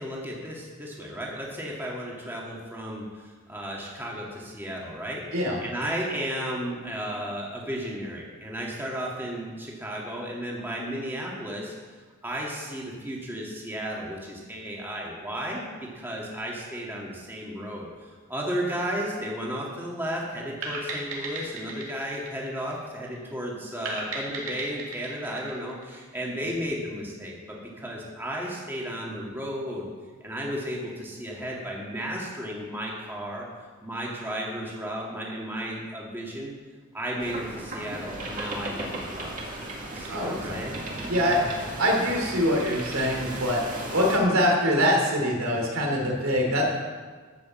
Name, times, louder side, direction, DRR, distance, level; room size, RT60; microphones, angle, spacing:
voice 1, 0.0-5.2 5.6-11.7 12.2-29.9 30.2-33.5 33.8-36.5 36.9-39.4 39.9-40.8, equal, 10° right, -3 dB, 2.0 m, -34 dB
sound 1, 20.6-23.2 23.9-26.4, right 2 dB, 70° right, 2.8 m, -36 dB
sound 2, 37.2-44.2, right 1 dB, 40° right, 2.2 m, -36 dB
voice 2, 40.1-40.6 41.1-41.4 41.8-43.6 43.9-46.6, equal, 90° right, 0 dB, 3.1 m, -24 dB
13.5 x 6.3 x 7.4 m, 1.5 s
head